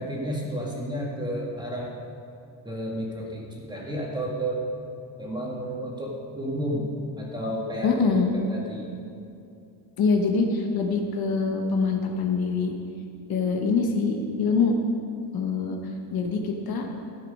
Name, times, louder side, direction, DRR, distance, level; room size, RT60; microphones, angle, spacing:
voice 1, 0.0-1.9 2.6-4.6 5.2-6.9 7.2-8.9, equal, 10° right, -3 dB, 1.8 m, -31 dB
voice 2, 7.8-8.3 10.0-12.7 13.3-14.7 15.3-16.9, left 4 dB, 50° left, 2 dB, 1.1 m, -24 dB
13.5 x 7.8 x 5.4 m, 2.6 s
cardioid pair, 155°, 45 cm